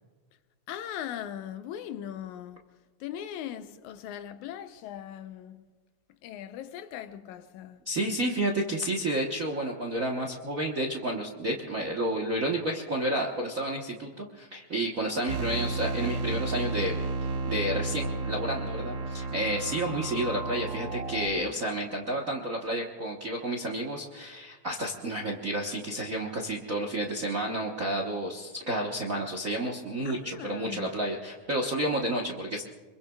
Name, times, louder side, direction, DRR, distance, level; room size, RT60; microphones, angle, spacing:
voice 1, 0.7-2.6 3.0-5.7 6.2-7.8 30.1-30.9, left 10 dB, 85° left, 2.2 m, -39 dB
voice 2, 7.8-17.0 17.4-32.6, right 1 dB, 55° right, 0.9 m, -31 dB
sound 1, 15.3-21.3, right 3 dB, 85° right, 2.5 m, -32 dB
27.0 x 22.5 x 2.4 m
omnidirectional pair, 3.4 m